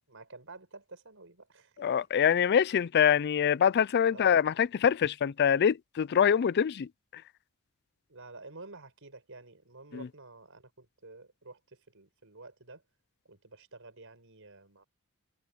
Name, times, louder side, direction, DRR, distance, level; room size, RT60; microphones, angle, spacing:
voice 1, 0.1-2.1 4.1-4.3 8.1-12.8 13.2-14.8, right 3 dB, 65° right, 6.4 m, -50 dB
voice 2, 1.8-7.2 9.9-10.1, left 8 dB, 50° left, 0.4 m, -25 dB
head